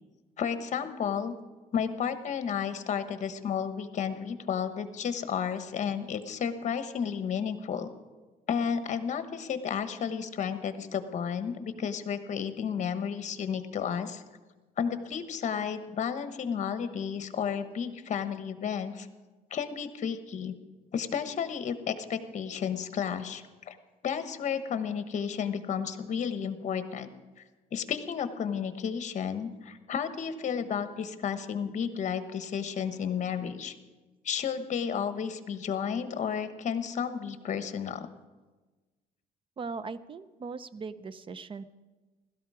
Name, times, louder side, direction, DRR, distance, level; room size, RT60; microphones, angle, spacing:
voice 1, 0.4-1.3 1.7-7.9 8.5-14.2 14.8-19.1 19.5-20.5 20.9-23.8 24.0-27.1 27.7-33.7 34.2-38.1, left 7 dB, 45° left, 11 dB, 1.2 m, -32 dB
voice 2, 39.6-41.6, right 4 dB, 30° right, 16 dB, 0.6 m, -39 dB
16.0 x 13.0 x 4.9 m, 1.2 s
cardioid pair, 110°, 17 cm